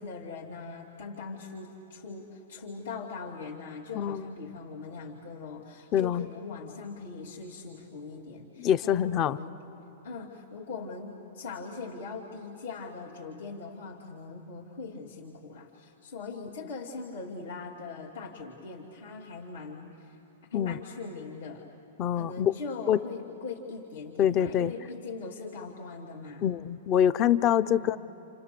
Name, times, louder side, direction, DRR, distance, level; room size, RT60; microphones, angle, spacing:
voice 1, 0.0-9.6 10.0-20.2 20.5-21.7 22.1-26.5 27.6-28.0, left 4 dB, 80° left, -4 dB, 2.7 m, -41 dB
voice 2, 5.9-6.3 8.6-9.4 20.5-20.8 22.0-22.5 22.9-23.0 24.2-24.7 26.4-28.0, left 10 dB, 30° left, 15 dB, 0.6 m, -25 dB
29.0 x 28.5 x 6.9 m, 2.8 s
hypercardioid pair, 140°, 0 cm